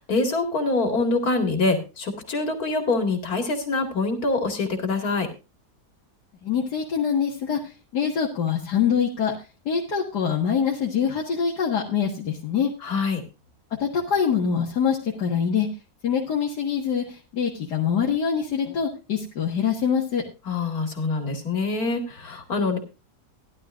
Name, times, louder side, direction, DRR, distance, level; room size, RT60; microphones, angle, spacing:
voice 1, 0.0-5.3 12.8-13.2 20.5-22.8, left 3 dB, 65° left, 3 dB, 2.7 m, -25 dB
voice 2, 6.4-7.6 7.9-9.3 9.7-12.7 13.8-15.7 16.0-17.0 17.3-20.2, left 7 dB, 90° left, -3 dB, 2.3 m, -24 dB
16.5 x 11.5 x 2.5 m, 0.30 s
omnidirectional pair, 1.7 m